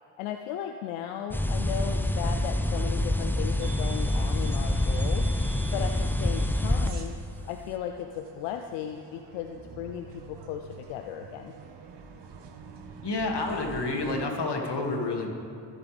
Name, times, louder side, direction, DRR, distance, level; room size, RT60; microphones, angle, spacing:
voice 1, 0.2-5.3 5.7-7.2 7.5-11.5, left 9 dB, 85° left, 6 dB, 0.6 m, -36 dB
sound 1, 1.3-6.9, left 1 dB, 5° left, 0.9 m, -26 dB
sound 2, 1.5-14.2, right 5 dB, 55° right, 1.4 m, -47 dB
voice 2, 13.0-15.3, left 3 dB, 55° left, 1 dB, 2.5 m, -29 dB
23.0 x 8.5 x 3.5 m, 2.6 s
hypercardioid pair, 45°, 49 cm